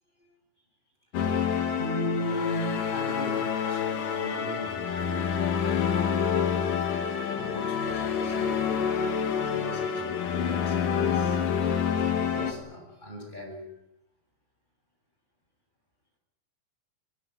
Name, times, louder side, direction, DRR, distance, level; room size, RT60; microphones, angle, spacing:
sound 1, 1.1-12.5, left 7 dB, 65° left, 3.6 m, -27 dB
voice 1, 1.5-5.8 7.0-8.9 9.4-13.7, left 1 dB, 10° left, 2 dB, 6.9 m, -38 dB
24.5 x 18.5 x 9.0 m, 0.88 s
omnidirectional pair, 4.2 m